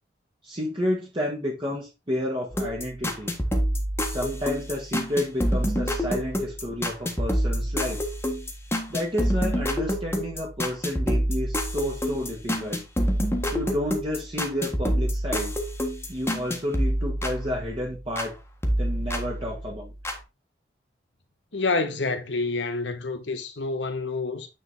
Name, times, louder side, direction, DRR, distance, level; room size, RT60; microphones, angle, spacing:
voice 1, 0.4-3.3 4.0-8.0 8.9-12.9 13.5-15.5 16.1-18.4 18.8-19.9, left 1 dB, 30° right, 1.7 m, -30 dB
sound 1, 2.5-18.3 18.6-20.2, equal, 15° left, 1.5 m, -27 dB
voice 2, 21.5-24.5, left 3 dB, 85° left, 1.3 m, -28 dB
9.2 x 4.0 x 4.0 m
head